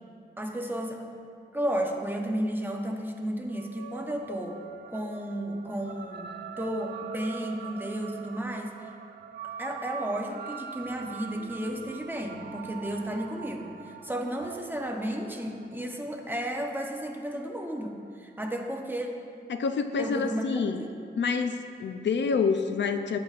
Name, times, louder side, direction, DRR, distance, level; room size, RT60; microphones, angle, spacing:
voice 1, 0.4-1.1 1.5-4.6 4.9-8.9 9.4-19.1 20.0-20.9, equal, 10° right, 1 dB, 0.8 m, -33 dB
sound 1, 3.5-18.2, right 7 dB, 65° right, 0.4 m, -43 dB
voice 2, 19.5-20.8 21.2-23.2, left 5 dB, 80° left, 8 dB, 0.4 m, -27 dB
14.0 x 7.1 x 2.4 m, 2.3 s
wide cardioid pair, 120°, 18 cm